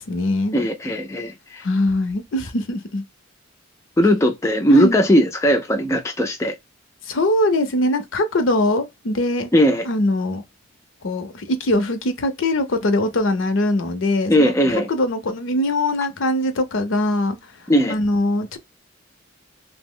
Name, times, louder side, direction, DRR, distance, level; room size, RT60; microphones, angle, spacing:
voice 1, 0.0-0.6 1.6-3.0 4.7-5.0 7.1-9.5 9.9-10.4 11.0-14.5 14.9-17.4 17.9-18.6, left 1 dB, 65° left, 0.6 m, -22 dB
voice 2, 0.5-1.6 4.0-6.5 9.5-9.9 14.3-14.9 17.7-18.0, equal, 15° left, 0.4 m, -18 dB
2.8 x 2.0 x 3.7 m
head